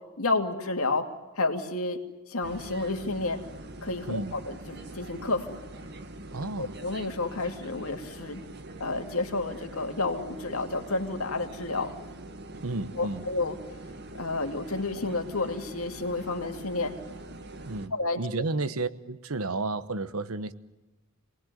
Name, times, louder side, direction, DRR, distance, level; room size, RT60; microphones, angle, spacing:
voice 1, 0.2-1.1 1.4-2.0 2.3-3.4 3.8-5.6 6.6-8.4 8.8-11.9 13.0-13.6 14.1-16.9 17.9-18.2, left 3 dB, 90° left, 2.6 m, -30 dB
sound 1, 2.4-17.9, right 1 dB, 50° right, 1.7 m, -43 dB
voice 2, 6.3-6.8 12.5-13.3 17.7-20.5, right 3 dB, 85° right, 1.1 m, -32 dB
27.0 x 20.0 x 9.3 m
head